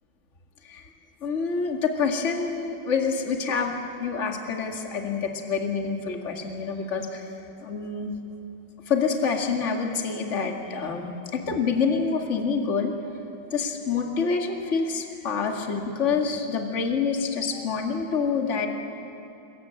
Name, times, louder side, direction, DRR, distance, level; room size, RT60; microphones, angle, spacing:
voice 1, 1.2-3.7 4.0-7.3 7.6-8.1 8.9-13.0 13.5-18.7, left 5 dB, 35° left, 2 dB, 2.3 m, -27 dB
28.0 x 22.0 x 9.0 m, 2.8 s
omnidirectional pair, 2.2 m